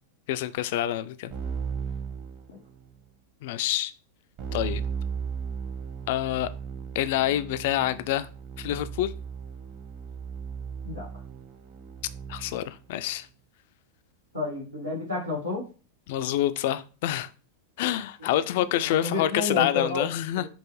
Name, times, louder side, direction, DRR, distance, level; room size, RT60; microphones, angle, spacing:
voice 1, 0.3-1.3 3.4-3.9 4.5-4.8 6.1-6.5 6.9-8.3 8.6-9.1 12.3-13.3 16.1-17.3 17.8-20.4, left 12 dB, 50° left, 14 dB, 0.3 m, -27 dB
Keyboard (musical), 1.3-3.0 4.4-12.8, right 6 dB, 40° right, 0.9 m, -36 dB
voice 2, 14.3-15.7 18.2-20.1 20.3-20.5, left 3 dB, 80° right, -4 dB, 1.7 m, -31 dB
5.4 x 2.5 x 3.1 m, 0.35 s
figure-of-eight pair, 90°, 0 cm